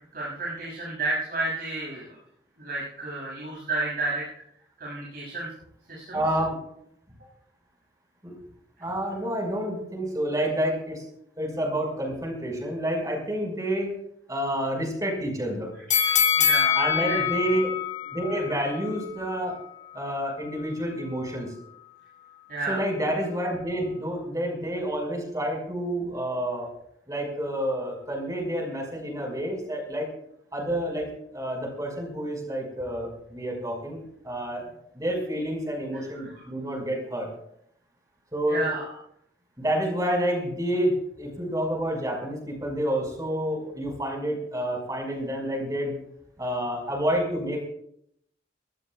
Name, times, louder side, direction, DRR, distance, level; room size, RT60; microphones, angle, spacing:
voice 1, 0.1-2.2 2.6-4.2 4.8-5.5 5.9-6.2 15.9-17.2 22.5-22.8 35.9-36.4 38.5-38.8, right 2 dB, 55° right, -5 dB, 7.3 m, -31 dB
voice 2, 6.1-6.6 8.2-8.3 8.8-11.0 11.4-13.9 14.3-15.7 16.8-17.7 18.1-19.6 19.9-21.5 22.7-26.7 27.1-30.1 30.5-34.6 34.9-37.3 38.3-38.7 39.6-45.9 46.4-47.7, equal, 20° right, 1 dB, 5.7 m, -29 dB
sound 1, 15.9-19.0 19.4-19.5, left 8 dB, 40° left, 1.7 m, -24 dB
22.5 x 19.0 x 2.5 m, 0.72 s
head